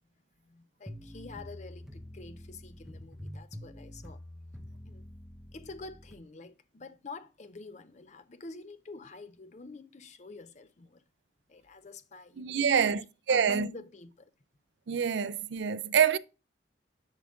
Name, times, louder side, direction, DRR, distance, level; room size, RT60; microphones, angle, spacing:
voice 1, 0.4-4.2 4.9-5.1 5.5-11.0 11.5-14.3, left 3 dB, 40° left, 0.5 m, -47 dB
sound 1, 0.9-6.2, equal, ahead, 0.8 m, -46 dB
voice 2, 12.4-13.0 13.3-13.7 14.9-16.2, right 7 dB, 75° right, 0.4 m, -26 dB
10.5 x 3.7 x 3.6 m
head